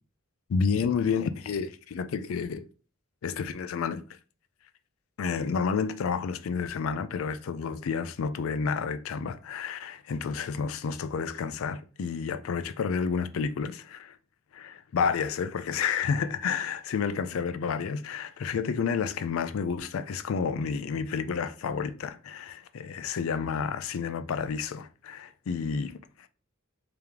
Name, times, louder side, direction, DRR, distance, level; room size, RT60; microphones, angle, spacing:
voice 1, 0.5-2.7 3.2-4.2 5.2-14.2 14.5-26.3, left 6 dB, 70° left, 0.4 m, -30 dB
3.4 x 2.9 x 3.5 m
head